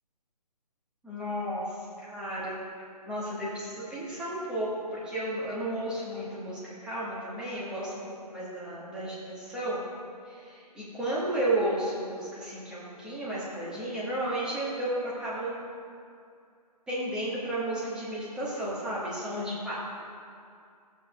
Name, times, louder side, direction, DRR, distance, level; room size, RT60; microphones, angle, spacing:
voice 1, 1.0-1.6 2.0-2.6 3.1-7.9 8.2-9.8 10.3-15.5 16.9-19.7, right 1 dB, 5° right, -8 dB, 1.1 m, -33 dB
13.5 x 7.2 x 2.2 m, 2.4 s
figure-of-eight pair, 145°, 21 cm